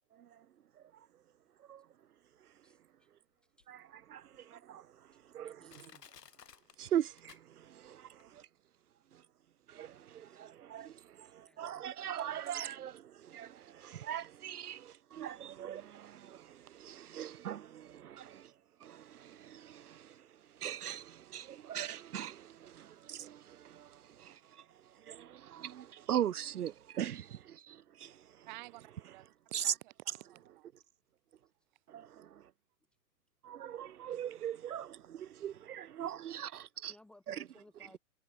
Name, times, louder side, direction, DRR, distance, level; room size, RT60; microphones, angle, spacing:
voice 1, 2.6-3.1 3.6-3.7 4.4-4.5 5.4-6.1 10.3-10.4 10.8-12.1 35.8-35.9 36.3-38.0, left 2 dB, ahead, 1.6 m, -64 dB
Crushing, 3.6-3.7 4.3-4.4 5.1-5.2 5.7-7.9 8.2-8.3, left 7 dB, 85° left, 6.0 m, -57 dB
voice 2, 4.1-4.9 5.3-5.8 6.8-8.4 9.7-18.5 18.8-20.2 20.6-24.4 25.1-28.2 29.5-29.6 31.9-32.4 33.4-36.9 37.3-37.4, right 10 dB, 70° right, 1.2 m, -41 dB
voice 3, 28.4-30.7 36.8-36.9, right 22 dB, 30° right, 4.1 m, -52 dB
hypercardioid pair, 165°, 47 cm